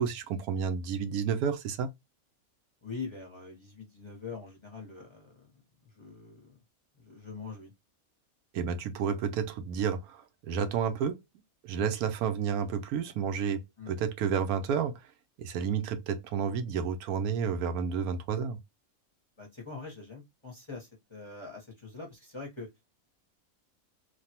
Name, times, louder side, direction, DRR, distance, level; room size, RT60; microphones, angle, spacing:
voice 1, 0.0-1.9 8.5-11.2 11.6-13.6 13.9-15.1 15.4-18.6, right 7 dB, 85° right, 1.0 m, -31 dB
voice 2, 2.8-5.5 5.8-6.6 7.0-7.7 13.8-13.9 19.4-22.7, left 4 dB, 25° left, 0.8 m, -43 dB
3.2 x 2.3 x 2.7 m
omnidirectional pair, 1.5 m